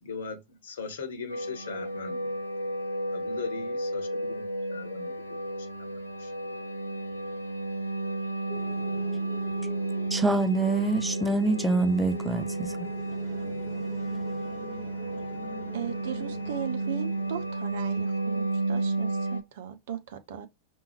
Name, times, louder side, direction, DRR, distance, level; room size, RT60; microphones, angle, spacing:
voice 1, 0.0-2.3 3.1-5.4 5.9-6.3, left 5 dB, 60° left, 1.0 m, -39 dB
sound 1, 1.3-19.4, right 2 dB, 85° left, 0.8 m, -32 dB
sound 2, 8.5-18.6, right 1 dB, 25° right, 2.4 m, -45 dB
voice 2, 10.1-12.9, right 2 dB, 5° right, 0.5 m, -26 dB
voice 3, 15.7-20.5, right 9 dB, 55° right, 0.8 m, -37 dB
5.3 x 2.6 x 3.1 m
figure-of-eight pair, 90°, 0 cm